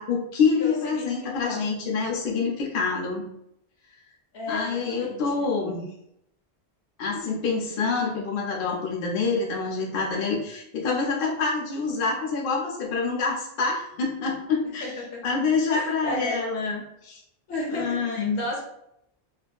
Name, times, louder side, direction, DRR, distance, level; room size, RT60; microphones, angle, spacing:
voice 1, 0.0-3.2 4.5-5.8 7.0-14.9 15.2-17.2 17.7-18.4, left 4 dB, 60° left, -2 dB, 0.7 m, -26 dB
voice 2, 0.6-1.7 4.3-5.2 14.6-15.4 15.7-16.4 17.5-18.6, left 1 dB, 85° left, -2 dB, 1.0 m, -34 dB
2.6 x 2.4 x 2.2 m, 0.78 s
omnidirectional pair, 1.1 m